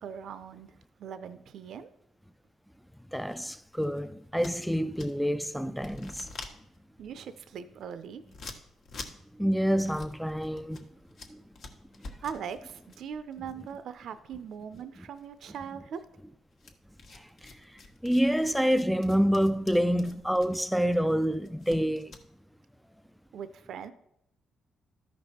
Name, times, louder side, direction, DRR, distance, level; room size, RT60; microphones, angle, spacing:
voice 1, 0.0-1.9 7.0-8.2 12.2-16.0 23.3-23.9, right 7 dB, 70° right, 0.5 m, -40 dB
voice 2, 3.1-6.3 9.3-10.9 11.3-11.4 17.1-22.2, equal, ahead, 0.3 m, -28 dB
sound 1, 3.2-5.4 5.7-14.5 14.7-15.6 16.6-22.3, left 3 dB, 65° left, 1.2 m, -48 dB
13.0 x 5.3 x 4.2 m
cardioid pair, 90°, 0 cm